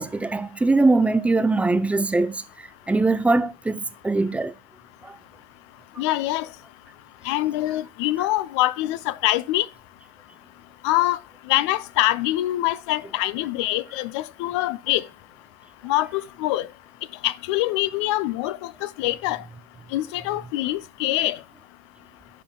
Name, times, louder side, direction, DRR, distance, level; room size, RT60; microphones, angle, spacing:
voice 1, 0.0-2.4 2.9-4.5 5.0-5.1, right 3 dB, 10° right, 0.6 m, -21 dB
voice 2, 6.0-6.5 7.3-9.7 10.8-11.2 11.5-15.0 15.8-16.7 17.2-19.4 19.9-21.4, left 16 dB, 70° left, 0.5 m, -24 dB
11.5 x 3.8 x 2.2 m
hypercardioid pair, 95°, 15 cm